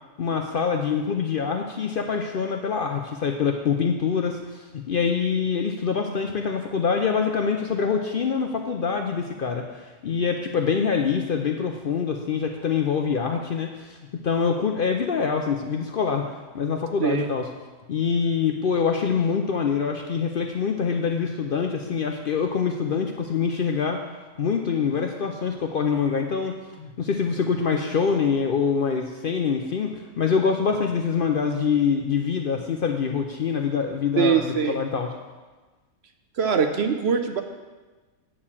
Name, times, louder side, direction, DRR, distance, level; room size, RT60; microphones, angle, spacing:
voice 1, 0.2-17.5 17.9-24.0 24.4-35.1, left 6 dB, 55° left, 4 dB, 0.6 m, -25 dB
voice 2, 34.2-34.8 36.4-37.4, right 6 dB, 60° right, 6 dB, 0.8 m, -22 dB
8.7 x 4.7 x 7.2 m, 1.3 s
omnidirectional pair, 1.4 m